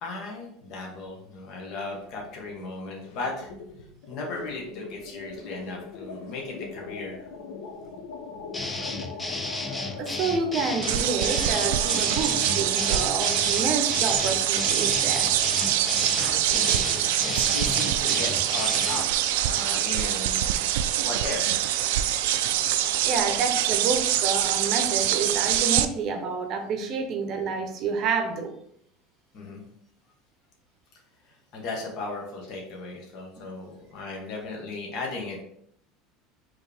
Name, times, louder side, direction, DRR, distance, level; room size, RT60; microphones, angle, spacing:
voice 1, 0.0-3.5 4.1-7.3 16.2-20.4 21.0-21.5 21.8-22.0 29.3-29.6 31.2-35.4, left 3 dB, 45° left, 0 dB, 1.1 m, -36 dB
sound 1, 1.8-2.6 2.9-20.9, left 4 dB, 85° left, 0.8 m, -42 dB
sound 2, 8.5-19.0, left 2 dB, 10° left, 0.4 m, -33 dB
voice 2, 10.0-15.3 23.0-28.5 33.4-33.5, right 4 dB, 40° right, 5 dB, 0.7 m, -29 dB
sound 3, 10.8-25.8, right 12 dB, 85° right, 0.3 m, -24 dB
4.5 x 3.1 x 3.5 m, 0.69 s
cardioid pair, 160°, 0 cm